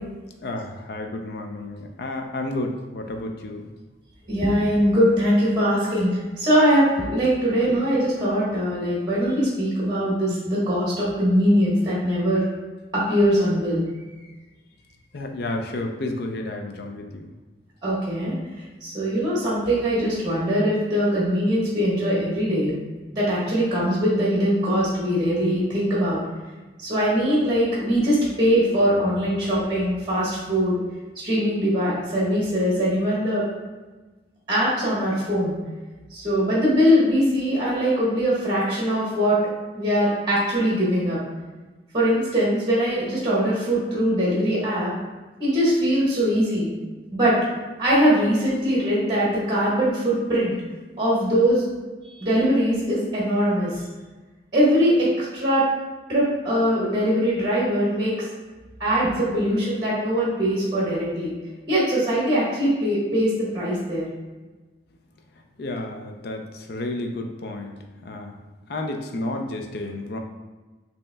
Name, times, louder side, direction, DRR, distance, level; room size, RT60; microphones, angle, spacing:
voice 1, 0.4-3.7 15.1-17.3 65.6-67.8 68.0-68.3 68.7-70.2, left 2 dB, 60° left, 4 dB, 0.5 m, -31 dB
voice 2, 4.3-12.4 12.9-13.8 17.8-18.3 18.8-22.8 23.1-26.2 26.8-30.8 31.1-33.4 34.5-35.6 36.1-39.4 39.7-41.2 41.9-44.9 45.4-46.7 47.1-47.4 47.8-50.5 51.0-51.6 52.1-53.7 54.5-55.7 56.1-58.1 58.8-61.3 61.7-64.1, equal, 25° right, -6 dB, 1.2 m, -21 dB
5.2 x 2.9 x 2.2 m, 1.2 s
head